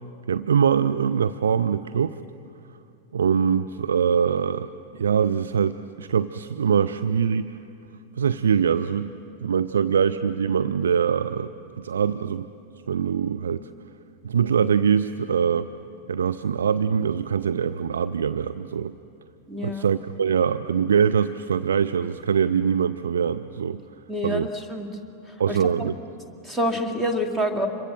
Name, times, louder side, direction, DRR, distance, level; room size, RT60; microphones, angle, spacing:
voice 1, 0.3-2.2 3.1-7.5 8.2-9.1 9.4-12.5 12.9-13.7 14.2-15.7 16.1-19.0 19.6-23.8 24.2-24.5 25.4-25.9, right 7 dB, 70° right, 11 dB, 0.5 m, -23 dB
voice 2, 19.5-19.9 24.1-24.9 25.3-25.9 26.4-27.7, equal, 5° right, 3 dB, 2.5 m, -27 dB
26.5 x 23.0 x 7.5 m, 2.6 s
figure-of-eight pair, 90°, 0 cm